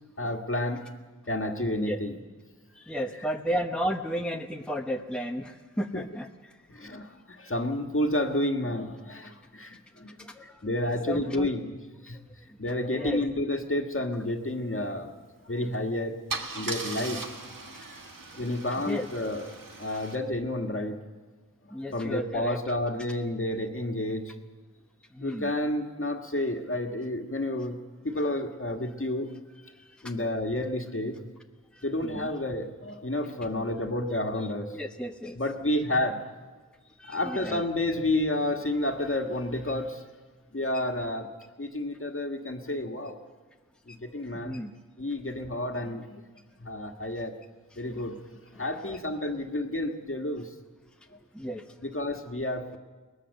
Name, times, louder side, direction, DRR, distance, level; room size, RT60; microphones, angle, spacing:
voice 1, 0.2-0.9 1.3-2.1 5.9-6.0 6.7-11.8 12.0-12.2 12.6-15.1 15.4-16.1 16.5-17.2 18.3-19.5 19.8-21.0 21.6-24.3 25.2-27.8 28.0-29.3 30.0-31.2 31.8-34.8 35.3-36.3 37.0-40.0 40.5-41.3 41.6-43.2 43.9-44.6 45.0-46.2 46.6-47.4 47.8-48.2 48.5-50.5 51.8-52.8, left 1 dB, 40° left, 4 dB, 1.7 m, -30 dB
voice 2, 2.7-6.9 10.2-10.7 11.1-11.5 12.5-12.6 12.9-13.2 17.1-17.2 18.9-19.1 21.7-22.6 25.1-25.5 29.6-30.1 31.7-32.3 34.7-35.4 37.0-37.6 43.9-44.0 44.3-44.7 47.7-47.8 48.9-49.0 50.8-50.9 51.3-51.6, equal, 5° left, 3 dB, 1.0 m, -34 dB
Car / Engine starting / Idling, 15.6-15.8 16.3-20.2, right 3 dB, 85° right, 1.7 m, -38 dB
22.0 x 19.0 x 6.6 m, 1.3 s
wide cardioid pair, 55°, 32 cm